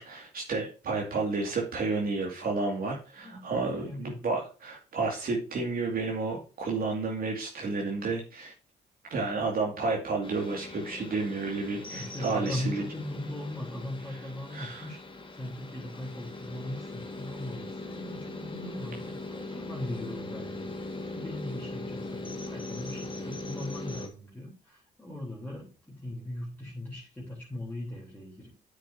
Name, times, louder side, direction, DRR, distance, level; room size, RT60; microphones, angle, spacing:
voice 1, 0.0-8.5 9.1-12.8 14.5-14.9, right 3 dB, 60° right, -1 dB, 2.3 m, -31 dB
voice 2, 3.2-4.3 11.9-28.5, left 1 dB, 10° left, -4 dB, 3.4 m, -39 dB
sound 1, 10.2-24.1, left 2 dB, 30° left, 1.8 m, -40 dB
8.9 x 7.1 x 2.7 m, 0.35 s
cardioid pair, 70°, 17 cm